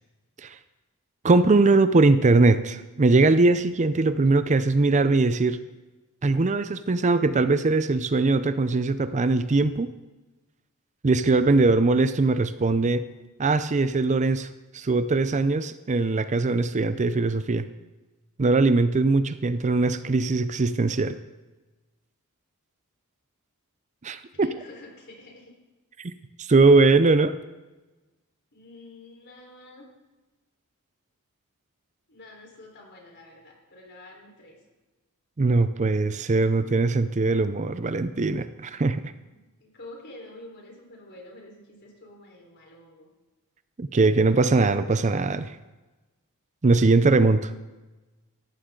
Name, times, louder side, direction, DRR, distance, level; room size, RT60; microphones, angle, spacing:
voice 1, 1.2-5.6 6.2-9.9 11.0-13.0 13.4-14.5 14.7-17.7 18.4-21.2 24.0-24.5 26.0-26.1 26.4-27.4 35.4-39.1 43.8-45.5 46.6-47.5, right 3 dB, 35° right, 12 dB, 0.5 m, -21 dB
voice 2, 24.3-25.5 28.5-29.9 32.1-34.6 39.2-43.1, left 2 dB, 50° left, 0 dB, 4.2 m, -48 dB
18.0 x 14.5 x 3.8 m, 1.2 s
head